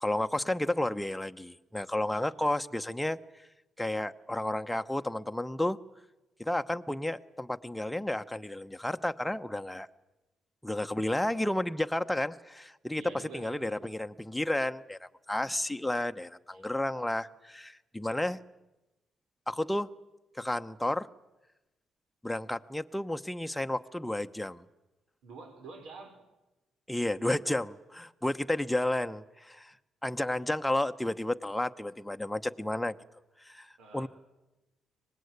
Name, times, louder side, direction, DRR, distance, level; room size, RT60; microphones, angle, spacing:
voice 1, 0.0-3.2 3.8-5.8 6.4-9.9 10.6-13.0 13.3-18.4 19.5-19.9 20.3-21.1 22.2-24.6 26.9-29.7 30.0-32.9 33.4-34.1, left 1 dB, 5° left, 8 dB, 0.9 m, -32 dB
voice 2, 2.1-2.4 12.9-13.9 16.5-16.6 25.2-26.2 33.8-34.1, right 4 dB, 85° right, 5 dB, 5.6 m, -48 dB
24.5 x 20.0 x 9.6 m, 1.0 s
cardioid pair, 110°, 0 cm